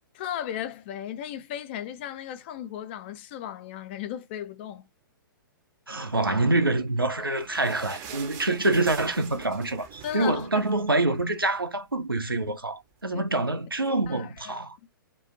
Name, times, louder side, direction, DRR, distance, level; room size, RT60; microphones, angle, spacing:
voice 1, 0.1-4.9 10.0-10.7 13.1-13.2 13.8-14.6, left 10 dB, 30° left, 0.3 m, -36 dB
voice 2, 5.9-14.8, right 2 dB, 85° right, 0.7 m, -26 dB
sound 1, 6.8-11.6 11.9-12.0 12.3-12.5 13.2-13.3, right 7 dB, 25° right, 0.5 m, -44 dB
2.4 x 2.2 x 2.5 m
figure-of-eight pair, 115°, 12 cm